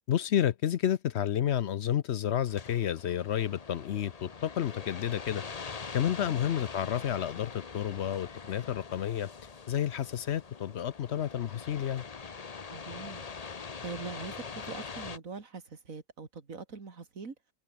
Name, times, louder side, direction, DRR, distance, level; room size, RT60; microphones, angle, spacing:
voice 1, 0.1-5.4 5.9-9.3 9.7-12.0, left 10 dB, 60° left, 0.9 m, -30 dB
sound 1, 2.5-15.2, left 5 dB, 30° left, 0.9 m, -43 dB
voice 2, 12.7-13.3 13.6-17.3, right 4 dB, 85° right, 2.9 m, -43 dB
omnidirectional pair, 1.4 m